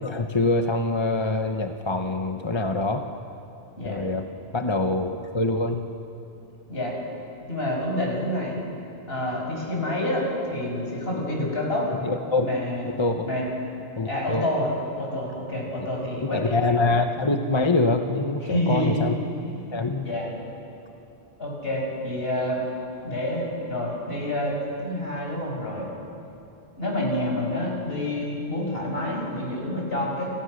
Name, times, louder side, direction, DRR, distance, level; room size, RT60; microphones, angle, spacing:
voice 1, 0.0-3.0 3.8-4.3 4.5-5.8 12.0-12.5 12.9-13.3 14.0-14.4 16.3-19.2 19.7-20.1, left 2 dB, 25° left, 5 dB, 1.0 m, -24 dB
voice 2, 7.5-8.6 9.1-11.9 12.4-13.0 13.2-13.5 14.1-16.7 18.4-19.1 19.4-20.3 21.4-22.6 23.0-25.9 26.8-30.3, left 1 dB, 65° left, -1 dB, 6.5 m, -28 dB
29.5 x 28.5 x 6.6 m, 2.8 s
omnidirectional pair, 1.1 m